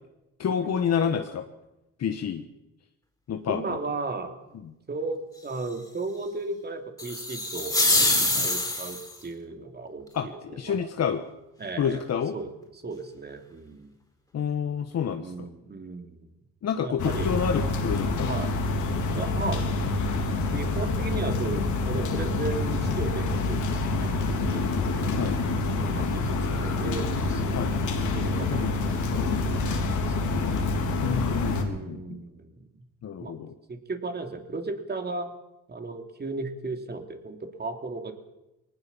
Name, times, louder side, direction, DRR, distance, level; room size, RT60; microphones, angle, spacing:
voice 1, 0.4-1.5 2.0-2.5 3.3-3.8 4.6-4.7 8.3-8.5 10.1-11.2 11.8-12.3 14.3-15.5 16.6-18.3 25.2-25.4 27.5-27.7 28.5-28.8 31.0-32.2 33.0-33.5, left 7 dB, 60° left, 6 dB, 1.4 m, -29 dB
voice 2, 3.5-4.3 4.9-7.8 8.2-10.4 10.6-10.9 11.6-12.0 12.3-12.5 12.8-13.9 15.2-16.3 16.8-17.4 18.3-18.5 19.1-19.8 20.5-24.6 25.7-27.6 28.1-30.4 31.6-32.8 33.2-33.3 33.7-35.3 35.7-38.1, right 3 dB, 35° right, 5 dB, 3.2 m, -35 dB
sound 1, 7.0-9.2, left 2 dB, 10° left, 4.7 m, -24 dB
sound 2, 17.0-31.6, left 3 dB, 75° left, 3.5 m, -27 dB
21.0 x 19.0 x 7.3 m, 0.93 s
cardioid pair, 90°, 30 cm